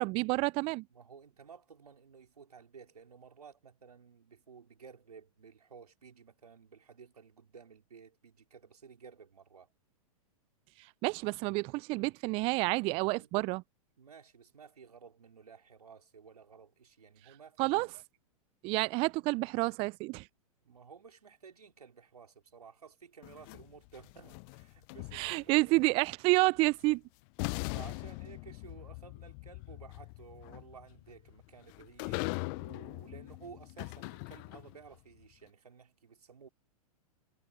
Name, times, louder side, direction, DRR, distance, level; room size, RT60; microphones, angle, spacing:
voice 1, 0.0-0.8 11.0-13.6 17.6-17.9 18.6-20.3 25.1-27.0, right 24 dB, 30° right, 0.4 m, -29 dB
voice 2, 0.9-9.7 12.9-13.5 14.0-17.9 20.6-25.9 27.7-36.5, right 6 dB, 85° right, 4.2 m, -54 dB
sound 1, 23.2-25.6 26.8-26.9 27.4-34.9, left 32 dB, 40° left, 0.5 m, -41 dB
hypercardioid pair, 110°, 19 cm